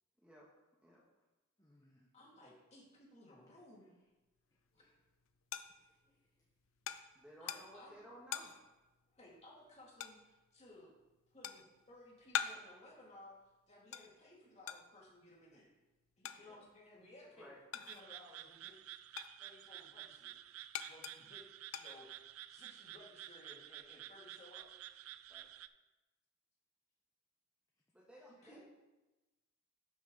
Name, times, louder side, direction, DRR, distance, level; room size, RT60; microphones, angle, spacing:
voice 1, 1.6-2.2 3.5-4.1 4.5-5.1 5.7-6.6 22.6-22.7 27.7-28.0, left 1 dB, 15° left, -2 dB, 1.0 m, -75 dB
voice 2, 2.1-3.9 4.7-4.9 7.4-8.0 9.1-10.9 11.3-13.4 13.7-15.7 16.2-17.5 17.8-18.8 19.4-20.4 20.8-22.1 22.5-24.7 28.3-28.6, left 1 dB, 30° left, -3 dB, 2.5 m, -59 dB
sound 1, 4.5-18.3 18.6-22.5, left 9 dB, 65° left, 0.5 m, -47 dB
voice 3, 7.1-8.5 16.4-16.6 17.4-17.6 25.3-25.5 27.9-28.6, equal, 5° right, -3 dB, 1.4 m, -57 dB
sound 2, 17.9-25.7, right 13 dB, 80° right, 0.4 m, -52 dB
12.0 x 6.2 x 4.0 m, 1.1 s
head